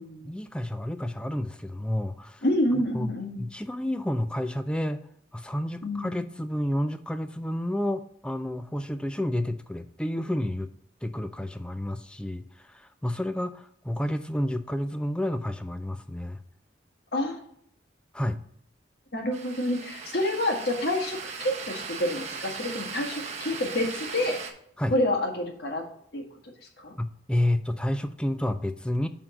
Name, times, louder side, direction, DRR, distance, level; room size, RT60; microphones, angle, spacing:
voice 1, 0.2-2.4 2.9-3.1 3.4-5.0 5.3-10.7 11.0-16.4 18.1-18.4 24.8-24.9 27.0-29.1, left 1 dB, 5° left, 9 dB, 0.3 m, -30 dB
voice 2, 2.4-3.5 5.8-6.2 17.1-17.4 19.1-24.4 24.9-25.8 26.1-26.2 26.8-26.9, left 1 dB, 60° left, 1 dB, 1.7 m, -28 dB
sound 1, 19.3-24.5, right 5 dB, 35° right, 0.9 m, -38 dB
7.2 x 3.7 x 5.2 m, 0.68 s
head